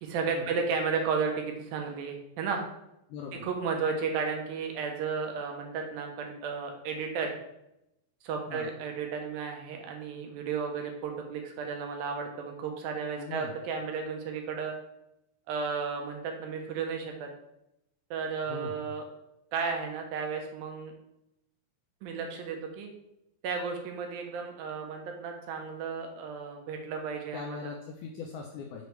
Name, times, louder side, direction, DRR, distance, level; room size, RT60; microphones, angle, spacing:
voice 1, 0.0-2.6 3.3-7.4 8.2-14.7 15.5-17.3 18.1-19.0 19.5-20.9 22.0-22.9 23.4-27.7, right 5 dB, 85° right, 3 dB, 2.7 m, -33 dB
voice 2, 3.1-3.5 8.5-8.7 13.2-13.6 18.5-18.7 27.3-28.9, left 5 dB, 80° left, 1 dB, 1.8 m, -40 dB
6.7 x 5.1 x 3.2 m, 0.83 s
omnidirectional pair, 4.1 m